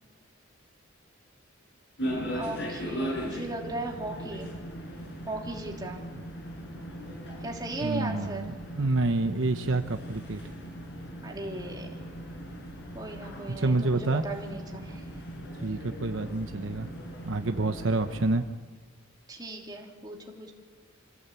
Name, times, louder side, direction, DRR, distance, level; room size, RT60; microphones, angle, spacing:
sound 1, 2.0-18.3, equal, 55° left, 7.1 m, -39 dB
voice 1, 2.3-4.5 5.3-6.0 7.4-8.4 11.2-12.0 12.9-15.0 19.3-20.5, right 2 dB, 20° right, 0 dB, 3.1 m, -37 dB
voice 2, 7.8-10.4 13.6-14.2 15.6-16.9 17.2-18.4, right 2 dB, 65° right, 7 dB, 1.0 m, -28 dB
26.5 x 16.5 x 8.4 m, 1.4 s
head